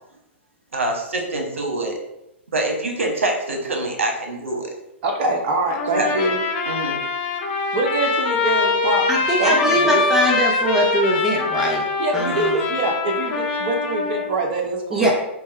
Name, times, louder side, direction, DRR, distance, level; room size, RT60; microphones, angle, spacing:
voice 1, 0.7-2.0 2.5-4.7 6.0-6.1 6.7-7.0, right 2 dB, 80° right, 1 dB, 1.0 m, -25 dB
voice 2, 5.0-6.4 7.7-9.1 9.4-10.0 12.0-15.1, right 2 dB, 45° right, 1 dB, 0.8 m, -24 dB
Trumpet, 5.7-14.3, left 4 dB, 50° left, 0.8 m, -23 dB
voice 3, 9.1-11.8 12.1-12.5 14.9-15.1, right 1 dB, 5° right, -2 dB, 0.8 m, -21 dB
4.6 x 2.3 x 4.3 m, 0.87 s
hypercardioid pair, 115°, 7 cm